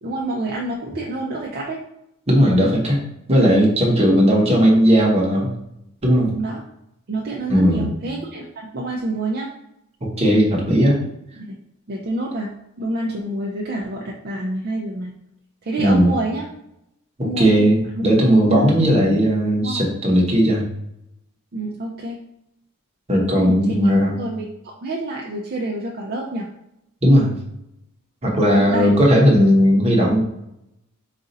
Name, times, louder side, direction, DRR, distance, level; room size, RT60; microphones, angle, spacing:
voice 1, 0.0-1.8 4.0-4.1 6.3-6.6 7.1-9.5 11.4-11.6 11.9-12.5 12.8-15.1 15.6-16.5 17.2-17.7 18.0-18.1 19.6-19.9 21.5-22.2 23.3-23.6 24.2-26.5 28.4-28.9, right 2 dB, 45° right, -1 dB, 0.5 m, -28 dB
voice 2, 2.3-3.0 3.3-5.5 6.0-6.3 7.5-7.9 10.0-11.0 15.8-16.1 17.2-20.6 23.1-24.1 27.0-27.3 28.2-30.2, equal, 30° right, -2 dB, 1.0 m, -16 dB
4.1 x 2.5 x 3.9 m, 0.80 s
head